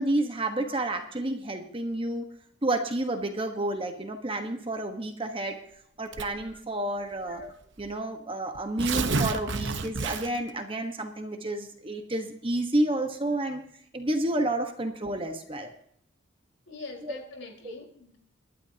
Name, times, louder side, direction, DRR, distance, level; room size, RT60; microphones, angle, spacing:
voice 1, 0.0-2.3 2.6-5.6 6.0-7.5 7.8-13.6 13.9-15.7 17.0-17.2 17.6-17.7, right 1 dB, 25° right, 5 dB, 1.3 m, -30 dB
Tearing, 6.1-6.5 7.4-7.5 7.8-7.9 8.6-10.5, right 3 dB, 60° right, 1.0 m, -30 dB
voice 2, 7.1-7.5 16.7-18.2, left 3 dB, 60° left, 0 dB, 4.6 m, -44 dB
27.5 x 12.0 x 2.9 m, 0.68 s
head